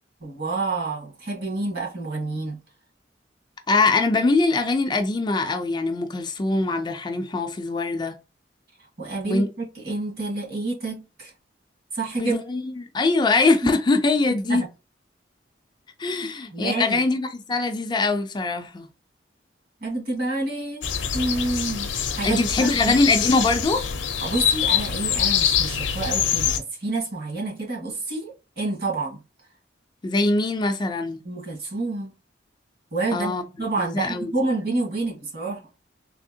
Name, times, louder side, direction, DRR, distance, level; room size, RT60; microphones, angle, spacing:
voice 1, 0.2-2.6 9.0-11.3 11.9-12.4 13.6-13.7 14.5-14.7 16.2-17.0 19.8-20.9 21.1-23.0 24.2-29.2 31.2-32.1 32.9-35.6, right 2 dB, 55° right, 1.8 m, -28 dB
voice 2, 3.7-8.2 9.2-9.5 12.2-14.6 16.0-18.9 22.2-23.9 30.0-31.2 33.1-33.4 33.8-34.3, left 3 dB, 25° left, 0.3 m, -22 dB
sound 1, 20.8-26.6, left 8 dB, 85° left, 0.5 m, -24 dB
3.5 x 2.8 x 2.7 m
head